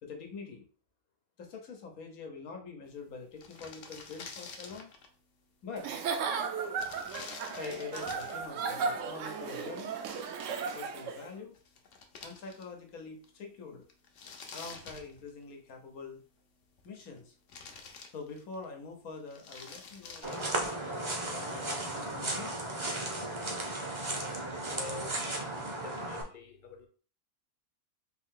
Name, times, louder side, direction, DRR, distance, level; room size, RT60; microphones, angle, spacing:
voice 1, 0.0-0.7 1.4-4.9 5.6-5.9 7.5-9.9 10.7-11.6 12.2-13.9 14.5-16.2 16.8-17.3 18.0-22.5, left 4 dB, 85° left, 1.4 m, -45 dB
sound 1, 3.0-3.1 3.3-5.2 6.7-8.5 11.2-11.3 11.5-12.9 13.2-13.3 13.9-15.7 16.6-17.2 17.5-18.6 19.2-20.8, left 5 dB, 65° left, 1.0 m, -48 dB
Giggle / Chuckle chortle, 5.8-11.3, right 5 dB, 70° right, 0.9 m, -35 dB
sound 2, 20.2-26.2, right 2 dB, 30° right, 0.6 m, -35 dB
voice 2, 24.7-25.2 25.8-26.9, left 4 dB, 50° left, 0.7 m, -45 dB
4.0 x 2.7 x 3.7 m
omnidirectional pair, 1.5 m